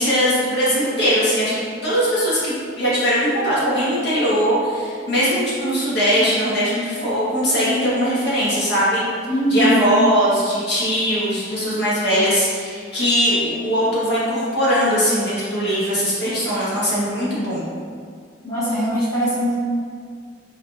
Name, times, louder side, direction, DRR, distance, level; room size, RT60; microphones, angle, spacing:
voice 1, 0.0-9.0 9.5-17.6, equal, 65° left, -9 dB, 1.3 m, -20 dB
voice 2, 9.3-9.8 18.4-19.5, right 1 dB, 20° left, -11 dB, 1.0 m, -20 dB
4.2 x 3.4 x 2.5 m, 2.1 s
head